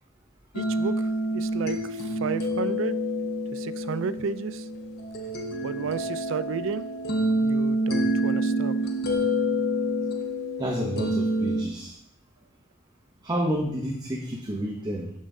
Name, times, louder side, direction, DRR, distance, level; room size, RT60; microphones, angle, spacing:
sound 1, 0.5-11.6, equal, 55° left, 0.9 m, -27 dB
voice 1, 0.5-1.0 1.3-3.0 3.5-4.7 5.6-6.9 7.4-8.7, right 5 dB, 70° right, 14 dB, 0.4 m, -32 dB
voice 2, 10.6-11.9 13.2-15.1, equal, 20° right, -1 dB, 0.8 m, -30 dB
7.3 x 6.3 x 3.7 m, 0.72 s
head